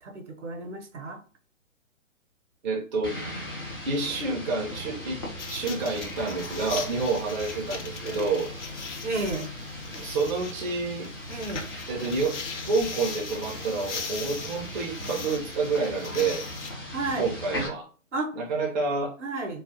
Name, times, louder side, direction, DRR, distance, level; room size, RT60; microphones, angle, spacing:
voice 1, 0.0-1.2 9.0-9.5 11.3-11.7 16.9-17.4 18.1-18.3 19.2-19.6, right 2 dB, 65° right, 2 dB, 0.9 m, -32 dB
voice 2, 2.6-3.1 3.8-5.2 5.5-8.5 10.0-11.1 11.9-12.4 12.7-16.5 17.2-17.9 18.4-19.1, right 3 dB, 35° right, -2 dB, 0.5 m, -28 dB
sound 1, 3.0-17.7, left 1 dB, 20° left, 0.4 m, -38 dB
sound 2, 5.4-16.7, left 5 dB, 60° left, 0.7 m, -39 dB
2.5 x 2.4 x 2.6 m, 0.38 s
figure-of-eight pair, 130°, 39 cm